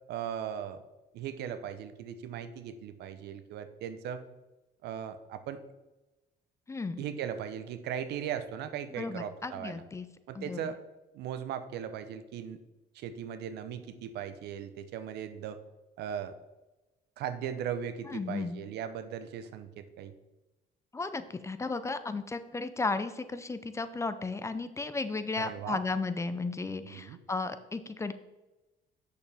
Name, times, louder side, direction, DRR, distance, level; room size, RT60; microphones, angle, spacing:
voice 1, 0.1-0.8 1.1-4.2 4.8-5.6 7.0-9.8 10.3-10.8 11.1-12.6 12.9-15.6 16.0-16.3 17.2-20.1 25.3-25.8 26.8-27.2, right 9 dB, 75° right, 11 dB, 0.7 m, -38 dB
voice 2, 6.7-7.0 9.0-10.1 10.3-10.7 18.1-18.6 20.9-28.1, left 3 dB, 15° left, 11 dB, 0.5 m, -34 dB
8.2 x 6.6 x 3.5 m, 1.1 s
cardioid pair, 110°, 17 cm